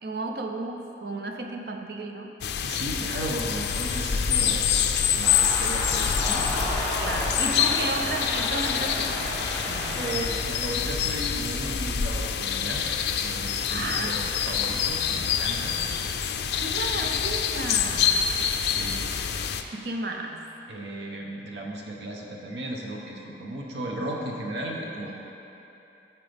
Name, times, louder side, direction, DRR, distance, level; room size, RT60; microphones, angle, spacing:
voice 1, 0.0-2.3 7.0-9.3 9.7-10.0 13.7-14.2 16.6-18.3 19.7-20.5, right 2 dB, 60° right, 3 dB, 0.6 m, -33 dB
sound 1, 2.4-19.6, left 7 dB, 75° left, 0.4 m, -26 dB
voice 2, 2.6-4.8 5.1-6.5 7.7-7.8 10.0-12.9 13.2-15.8 18.6-19.1 20.7-25.1, right 1 dB, 85° right, -1 dB, 0.9 m, -35 dB
sound 2, 5.2-10.2, left 1 dB, 10° left, 1.1 m, -32 dB
13.0 x 4.5 x 3.5 m, 2.9 s
head